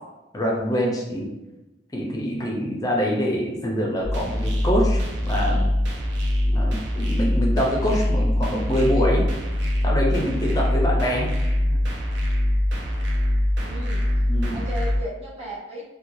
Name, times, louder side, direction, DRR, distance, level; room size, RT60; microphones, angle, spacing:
voice 1, 0.3-1.3 1.9-5.7 6.4-9.3 9.8-11.3 11.7-11.8 14.3-14.6, equal, 20° left, -2 dB, 0.5 m, -25 dB
sound 1, 4.0-15.0, left 1 dB, 65° right, 0.6 m, -23 dB
voice 2, 13.6-14.1 14.5-15.8, equal, 35° right, -6 dB, 0.9 m, -35 dB
3.1 x 2.2 x 2.6 m, 1.0 s
head